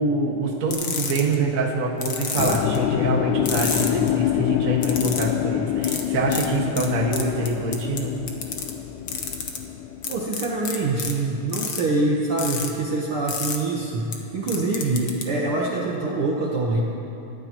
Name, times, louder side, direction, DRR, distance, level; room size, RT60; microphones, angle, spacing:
voice 1, 0.0-8.1, right 2 dB, 40° right, -1 dB, 1.2 m, -25 dB
sound 1, 0.7-1.4 2.0-2.8 3.5-4.1 4.8-5.3 5.8-6.0 6.3-6.5 6.8-6.9 7.1-8.0 8.3-8.7 9.1-9.6 10.0-11.1 11.5-11.8 12.4-12.7 13.3-13.6 14.1-14.2 14.5-15.2, left 6 dB, 65° left, 1.2 m, -29 dB
sound 2, 2.4-12.5 12.8-14.4, left 11 dB, 80° left, 2.0 m, -27 dB
voice 2, 10.1-16.8, right 2 dB, 65° right, -3 dB, 1.4 m, -25 dB
28.0 x 13.5 x 3.0 m, 3.0 s
omnidirectional pair, 3.8 m